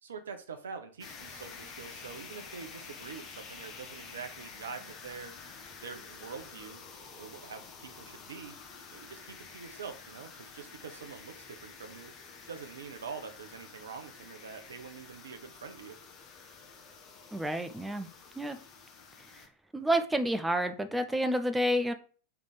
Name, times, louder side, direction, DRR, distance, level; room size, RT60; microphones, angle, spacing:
voice 1, 0.0-5.3 5.8-6.8 7.2-8.6 8.9-12.1 12.5-16.0, right 5 dB, 65° right, 7 dB, 0.6 m, -45 dB
sound 1, 1.0-19.5, left 5 dB, 30° left, 0.9 m, -49 dB
voice 2, 17.3-18.1 18.4-18.6 19.7-21.9, right 1 dB, 5° right, 8 dB, 0.4 m, -29 dB
3.3 x 3.3 x 4.0 m, 0.40 s
figure-of-eight pair, 90°, 0 cm